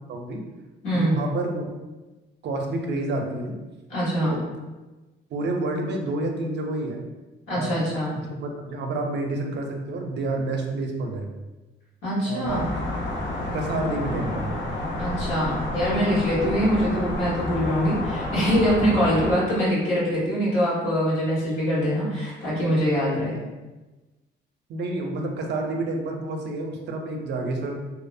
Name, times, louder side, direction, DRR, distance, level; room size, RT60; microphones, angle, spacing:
voice 1, 0.1-0.4 0.9-1.6 2.4-3.6 4.2-4.4 5.3-7.0 7.5-7.8 8.1-11.3 12.2-12.7 13.5-14.6 24.7-27.8, right 2 dB, 60° right, 2 dB, 0.5 m, -29 dB
voice 2, 0.8-1.2 3.9-4.3 7.5-8.1 12.0-12.7 15.0-23.4, equal, 85° left, -8 dB, 1.3 m, -23 dB
sound 1, 12.4-19.3, left 1 dB, 65° left, 0.6 m, -30 dB
2.7 x 2.0 x 2.5 m, 1.1 s
cardioid pair, 90°, 20 cm